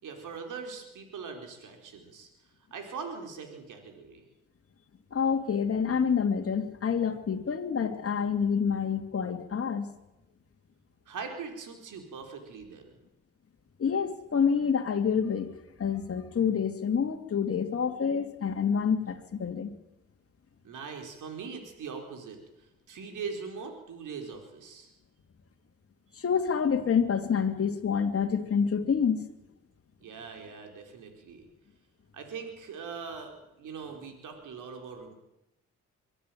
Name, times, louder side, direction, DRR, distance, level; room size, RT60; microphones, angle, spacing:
voice 1, 0.0-2.3 2.7-4.2 11.1-12.9 20.6-22.4 22.9-24.9 30.0-31.4 32.1-35.1, right 5 dB, 75° right, 4 dB, 4.4 m, -41 dB
voice 2, 5.1-9.9 13.8-15.5 15.8-19.7 26.2-29.3, left 6 dB, 45° left, 6 dB, 2.7 m, -27 dB
23.5 x 12.5 x 9.3 m, 0.94 s
cardioid pair, 70°, 31 cm